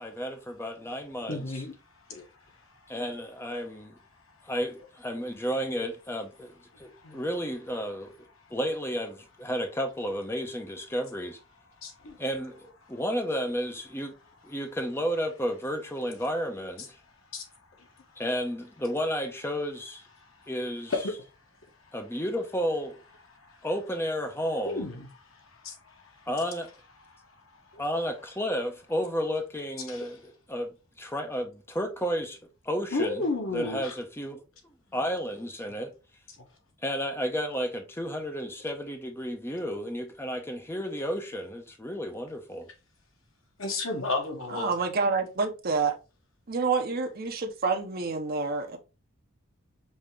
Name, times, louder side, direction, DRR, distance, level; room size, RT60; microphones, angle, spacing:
voice 1, 0.0-1.6 2.9-3.9 4.4-8.1 8.5-11.4 12.2-12.6 12.9-14.1 14.4-17.0 18.2-20.0 20.5-20.9 21.9-23.0 23.6-24.9 26.3-26.7 27.8-32.4 32.6-33.2 33.5-34.4 34.9-35.9 36.8-42.7, equal, 10° left, 0.8 m, -32 dB
voice 2, 1.3-1.7 2.1-2.2 7.0-7.2 11.8-12.2 17.3-17.4 20.9-21.0 24.6-25.1 25.6-25.7 29.9-30.1 32.9-33.9 43.6-44.7, left 3 dB, 70° left, 1.3 m, -31 dB
voice 3, 44.5-45.9 46.5-48.8, right 4 dB, 45° right, 0.7 m, -28 dB
5.4 x 2.8 x 3.3 m
head